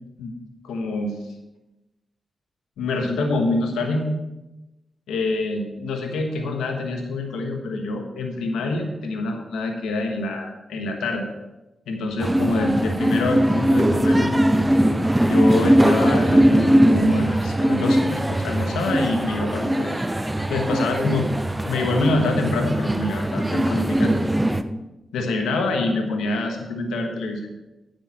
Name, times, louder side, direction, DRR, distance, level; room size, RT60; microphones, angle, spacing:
voice 1, 0.6-1.2 2.8-4.2 5.1-11.3 11.9-14.3 15.2-20.0 20.5-21.3 21.6-24.2 25.1-27.7, left 2 dB, 90° left, 3 dB, 1.2 m, -26 dB
sound 1, 12.2-24.6, right 1 dB, 15° right, 0.8 m, -20 dB
9.8 x 6.8 x 5.8 m, 0.99 s
supercardioid pair, 40°, 0 cm